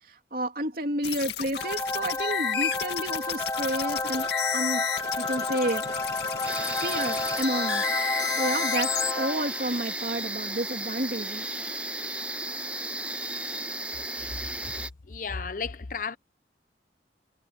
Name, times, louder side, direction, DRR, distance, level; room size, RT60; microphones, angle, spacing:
voice 1, 0.3-4.3 4.5-4.8 5.2-5.8 6.8-7.8 8.4-11.4, right 1 dB, 55° right, 3.1 m, -30 dB
sound 1, 1.0-9.1, left 8 dB, 75° left, 2.2 m, -32 dB
sound 2, 1.6-9.8, left 2 dB, 20° left, 0.8 m, -31 dB
sound 3, 6.4-14.9, right 2 dB, 10° right, 1.2 m, -34 dB
voice 2, 15.1-16.2, left 5 dB, 50° left, 0.8 m, -33 dB
head